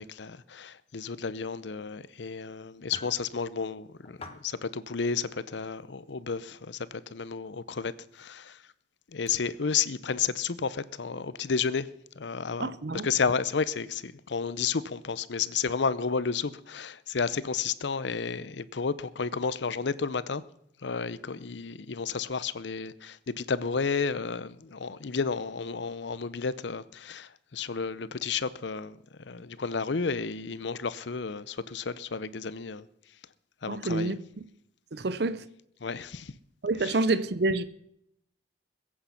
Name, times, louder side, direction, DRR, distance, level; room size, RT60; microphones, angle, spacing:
voice 1, 0.0-8.6 9.1-11.9 12.2-12.7 13.0-20.4 20.8-29.0 29.3-32.8 33.6-34.2 35.8-36.3 36.8-37.0, left 5 dB, 75° left, 0.7 m, -32 dB
sound 1, 2.8-3.2 4.0-4.5 5.1-5.2 6.1-6.2 8.1-8.3 9.3-9.4, left 2 dB, 30° left, 1.1 m, -46 dB
voice 2, 12.6-13.1 33.7-34.2 34.9-35.4 36.6-37.6, right 2 dB, 60° right, 0.6 m, -27 dB
21.0 x 8.7 x 5.8 m
head